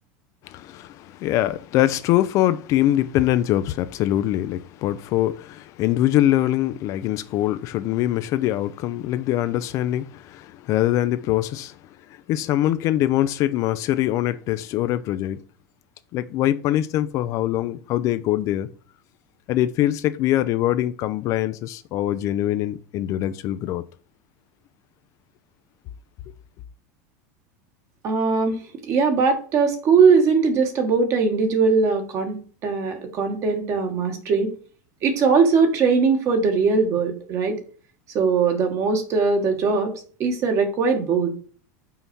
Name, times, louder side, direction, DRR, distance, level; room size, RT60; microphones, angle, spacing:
voice 1, 0.4-11.8 12.3-15.4 16.1-18.7 19.5-23.8, left 13 dB, 40° left, 0.4 m, -23 dB
voice 2, 28.0-28.6 28.9-34.5 35.0-37.6 38.1-39.9 40.2-41.3, right 5 dB, 35° right, 1.5 m, -20 dB
5.6 x 4.1 x 6.0 m
supercardioid pair, 155°, 9 cm